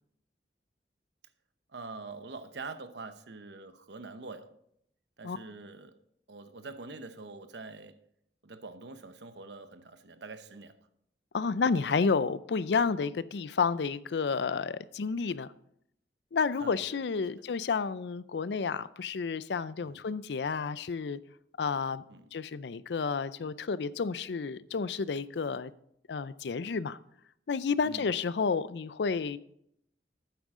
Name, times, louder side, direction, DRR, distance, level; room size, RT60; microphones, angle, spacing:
voice 1, 1.7-4.5 5.2-6.0 6.3-8.0 8.4-10.8 16.6-17.0 17.3-17.4 19.8-20.0 22.1-22.3 27.8-28.1, right 3 dB, 70° right, 0.9 m, -45 dB
voice 2, 11.3-15.5 16.3-21.2 21.6-22.0 22.3-25.7 26.1-27.0 27.5-29.4, left 5 dB, 70° left, 0.5 m, -30 dB
12.0 x 9.2 x 3.7 m
head